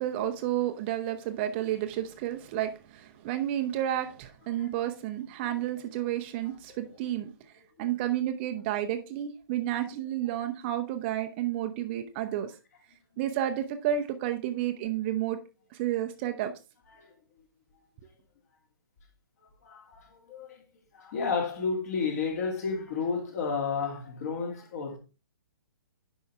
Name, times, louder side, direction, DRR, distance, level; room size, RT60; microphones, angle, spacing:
voice 1, 0.0-12.5 13.2-15.4 15.7-16.5, right 11 dB, 30° right, 0.8 m, -31 dB
voice 2, 19.6-20.6 20.9-25.0, left 5 dB, 45° left, 2.6 m, -31 dB
10.0 x 5.5 x 3.5 m
figure-of-eight pair, 125°, 12 cm